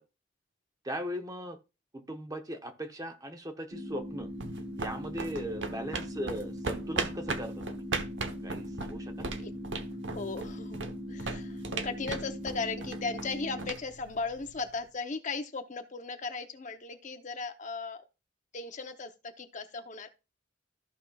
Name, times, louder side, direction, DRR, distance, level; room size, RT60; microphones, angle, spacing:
voice 1, 0.8-1.6 1.9-4.3 4.8-7.9 8.4-9.3, equal, 20° right, 0.8 m, -38 dB
sound 1, 3.7-13.7, equal, 35° right, 1.3 m, -40 dB
sound 2, 3.9-14.7, right 3 dB, 70° right, 1.0 m, -39 dB
voice 2, 10.1-18.0 18.5-20.1, left 4 dB, 40° left, 0.8 m, -37 dB
14.0 x 5.5 x 2.3 m
head